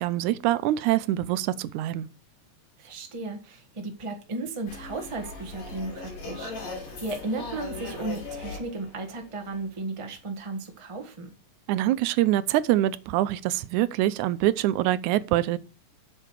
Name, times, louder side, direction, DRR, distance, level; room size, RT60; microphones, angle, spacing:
voice 1, 0.0-2.1 11.7-15.6, right 14 dB, 85° right, 2.0 m, -24 dB
voice 2, 2.8-11.3, right 2 dB, 20° right, 0.7 m, -35 dB
sound 1, 4.7-9.8, left 3 dB, 65° left, 3.7 m, -39 dB
7.8 x 6.7 x 4.7 m
omnidirectional pair, 3.4 m